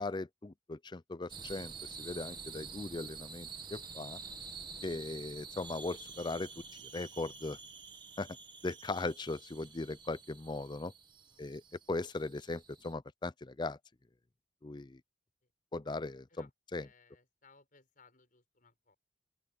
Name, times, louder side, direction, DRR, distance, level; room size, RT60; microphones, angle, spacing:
voice 1, 0.0-4.2 4.8-6.5 6.9-7.6 8.2-8.3 8.6-10.9 11.4-11.6 11.9-13.8 14.6-15.0 15.7-16.5 16.7-16.9, left 2 dB, 25° left, 0.5 m, -38 dB
sound 1, 1.3-12.9, right 5 dB, 25° right, 1.4 m, -48 dB
voice 2, 16.3-19.0, left 4 dB, 45° left, 6.0 m, -65 dB
open air
head